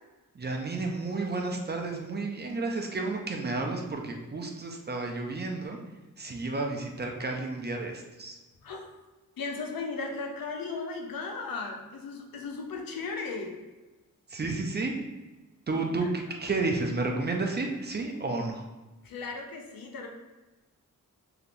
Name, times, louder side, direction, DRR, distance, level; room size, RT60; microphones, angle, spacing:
voice 1, 0.4-5.8 6.2-8.4 14.3-14.9 15.7-18.6, right 3 dB, 30° right, 1 dB, 0.4 m, -31 dB
voice 2, 9.4-13.6 15.7-16.1 19.0-20.1, left 4 dB, 85° left, 2 dB, 0.6 m, -36 dB
3.3 x 2.8 x 2.5 m, 1.1 s
wide cardioid pair, 100°, 34 cm